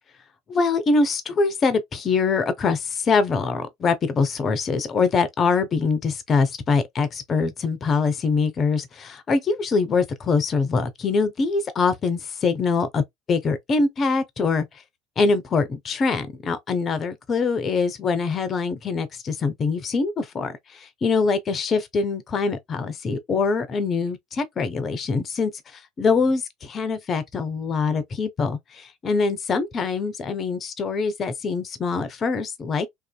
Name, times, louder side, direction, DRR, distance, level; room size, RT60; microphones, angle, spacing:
voice 1, 0.5-13.0 13.3-14.7 15.2-32.9, left 4 dB, 35° left, 0.6 m, -24 dB
2.6 x 2.4 x 2.2 m
hypercardioid pair, 80°, 0 cm